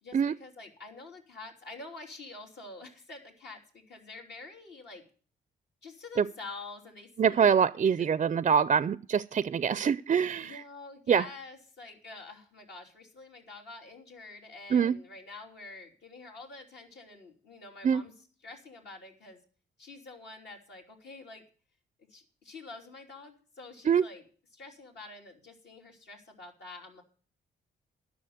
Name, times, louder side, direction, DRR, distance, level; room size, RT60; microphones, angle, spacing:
voice 1, 0.0-5.0 5.8-8.1 10.4-18.1 18.4-19.4 19.8-21.4 22.0-24.2 24.5-27.0, left 3 dB, 65° left, 3.1 m, -47 dB
voice 2, 7.2-10.6 11.1-11.2 14.7-14.9 17.8-18.0 23.9-24.0, right 7 dB, 35° right, 0.4 m, -24 dB
10.5 x 6.3 x 7.8 m
supercardioid pair, 65°, 19 cm